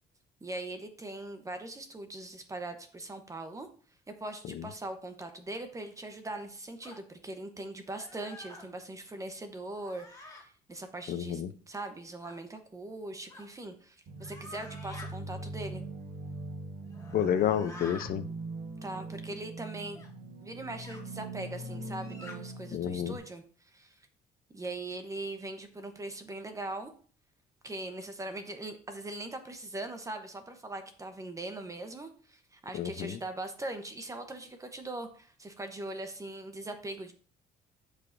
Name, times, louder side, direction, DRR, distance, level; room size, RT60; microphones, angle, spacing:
voice 1, 0.4-3.7 4.1-15.8 18.8-20.0 20.4-24.0 24.5-26.9 27.6-37.1, right 2 dB, 20° right, 6 dB, 1.0 m, -41 dB
sound 1, 6.8-7.0 7.9-8.7 9.7-10.4 12.2-12.4 13.3-13.5 14.2-15.1 16.8-18.1 19.9-20.1 20.8-21.0 21.9-22.4, left 2 dB, 20° left, 1.9 m, -48 dB
voice 2, 11.1-11.5 17.1-18.2 22.7-23.2 32.7-33.2, left 9 dB, 60° left, 11 dB, 0.7 m, -30 dB
sound 2, 14.1-23.2, right 2 dB, 60° right, 1.4 m, -42 dB
11.5 x 5.0 x 2.6 m, 0.43 s
cardioid pair, 110°, 17 cm